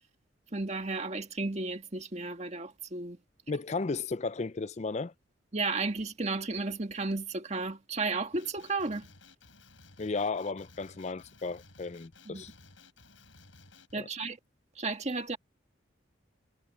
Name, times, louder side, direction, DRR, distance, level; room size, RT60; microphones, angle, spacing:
voice 1, 0.5-3.2 5.5-9.1 12.3-12.4 13.9-14.4 14.8-15.4, right 3 dB, 35° right, 1.8 m, -33 dB
voice 2, 3.5-5.1 10.0-12.5 13.9-14.1, left 4 dB, 35° left, 0.5 m, -34 dB
Male speech man speaking, 8.3-13.9, left 3 dB, 75° left, 7.8 m, -56 dB
head